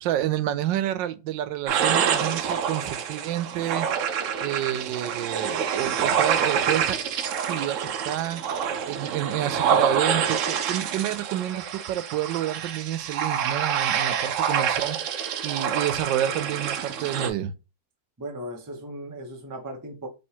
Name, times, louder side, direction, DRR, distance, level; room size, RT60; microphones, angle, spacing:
voice 1, 0.0-4.1 4.4-7.0 7.5-8.4 8.9-17.5, right 12 dB, 85° right, 1.3 m, -29 dB
sound 1, 1.7-17.3, right 8 dB, 70° right, 0.7 m, -27 dB
voice 2, 18.2-20.1, right 1 dB, 30° right, 0.3 m, -37 dB
3.4 x 3.0 x 4.4 m
omnidirectional pair, 1.9 m